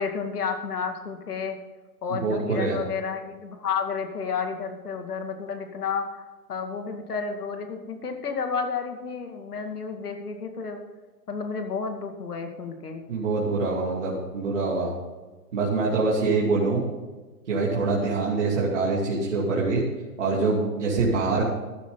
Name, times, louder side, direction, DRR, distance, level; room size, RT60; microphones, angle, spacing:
voice 1, 0.0-1.6 2.0-6.2 6.5-10.8 11.3-13.0, left 5 dB, 70° left, 5 dB, 2.3 m, -31 dB
voice 2, 2.1-2.8 13.1-14.9 15.5-16.8 17.5-19.8 20.2-21.5, right 3 dB, 45° right, -5 dB, 2.7 m, -24 dB
14.0 x 10.5 x 4.0 m, 1.2 s
hypercardioid pair, 170°, 47 cm